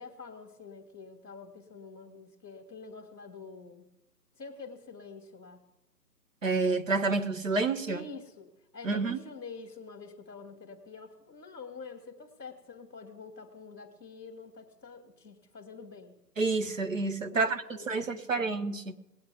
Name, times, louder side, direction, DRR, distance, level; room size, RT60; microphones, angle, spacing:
voice 1, 0.0-3.9 4.3-5.6 7.9-16.2 17.3-18.6, left 4 dB, 5° left, 1.2 m, -47 dB
voice 2, 6.4-8.0 8.8-9.2 16.4-19.0, right 3 dB, 50° right, 1.0 m, -29 dB
20.0 x 8.9 x 3.5 m
hypercardioid pair, 175°, 50 cm